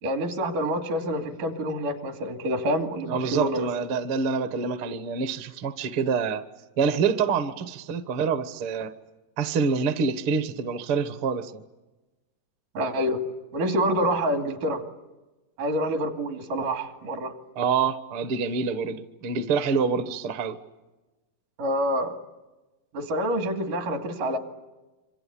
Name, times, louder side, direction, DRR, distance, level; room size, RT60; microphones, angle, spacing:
voice 1, 0.0-3.7 12.8-13.2 13.5-14.8 15.6-17.3 21.6-22.1 22.9-24.4, equal, 70° right, 4.2 m, -27 dB
voice 2, 3.1-6.4 6.8-9.0 9.4-11.6 17.5-20.6, right 5 dB, 55° right, 1.6 m, -26 dB
28.0 x 25.0 x 8.6 m
omnidirectional pair, 3.9 m